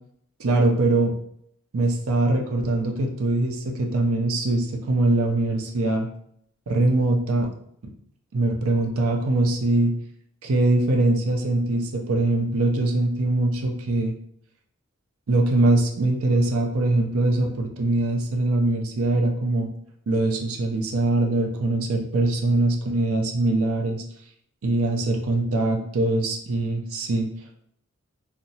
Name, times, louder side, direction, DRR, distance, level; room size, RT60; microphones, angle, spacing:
voice 1, 0.4-1.1 1.7-6.1 6.7-7.5 8.3-9.9 10.4-14.1 15.3-19.7 20.1-24.0 24.6-27.3, right 2 dB, 90° right, 2 dB, 0.5 m, -22 dB
2.8 x 2.1 x 2.7 m, 0.69 s
head